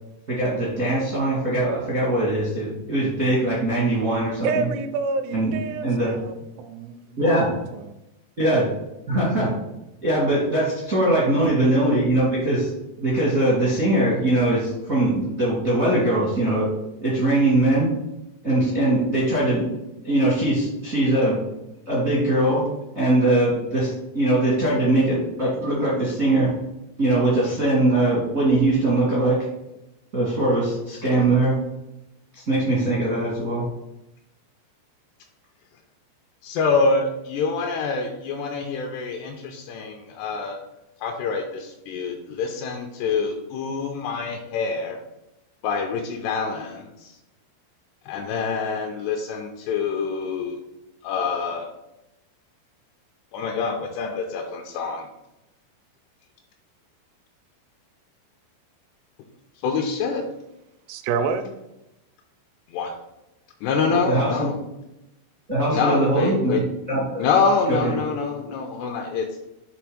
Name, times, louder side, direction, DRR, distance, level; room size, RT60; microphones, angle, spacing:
voice 1, 0.3-4.7 5.3-5.5 5.8-6.1 7.2-7.5 8.4-8.6 9.1-9.5 10.0-12.7 13.0-16.7 17.0-17.9 18.4-19.6 20.0-21.4 21.8-22.6 22.9-26.5 27.0-29.4 30.1-31.5 32.5-33.6 63.9-64.5 65.5-67.2 67.7-68.0, right 1 dB, 65° right, -7 dB, 0.8 m, -21 dB
voice 2, 4.4-8.0 60.9-61.5, right 4 dB, 80° right, 7 dB, 2.4 m, -28 dB
voice 3, 36.4-40.6 41.0-45.0 45.6-47.1 48.1-50.6 51.0-51.7 53.3-55.1 59.6-60.2 62.7-62.9 63.6-64.6 65.7-66.6 67.2-69.3, left 4 dB, 85° left, 2 dB, 2.5 m, -26 dB
7.0 x 3.6 x 4.8 m, 0.91 s
omnidirectional pair, 5.3 m